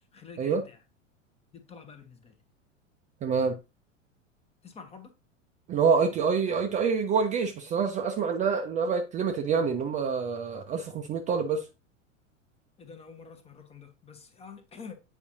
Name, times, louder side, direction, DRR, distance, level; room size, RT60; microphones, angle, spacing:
voice 1, 0.1-0.6 1.5-2.3 4.6-5.1 12.8-14.9, left 5 dB, 15° left, 0.9 m, -47 dB
voice 2, 3.2-3.6 5.7-11.7, right 5 dB, 20° right, 0.5 m, -26 dB
8.3 x 4.9 x 2.7 m
figure-of-eight pair, 90°, 38 cm